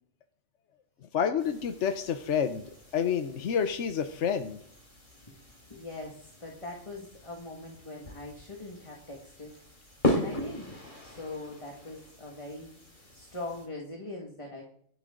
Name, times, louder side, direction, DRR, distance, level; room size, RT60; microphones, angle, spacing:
voice 1, 1.1-4.6, left 7 dB, 80° left, 8 dB, 1.2 m, -29 dB
sound 1, 1.4-13.7, left 1 dB, 45° left, 3.7 m, -38 dB
voice 2, 5.1-9.6 10.1-10.7 11.0-14.6, left 2 dB, 25° left, 0 dB, 2.1 m, -42 dB
25.5 x 8.6 x 3.8 m, 0.68 s
omnidirectional pair, 1.2 m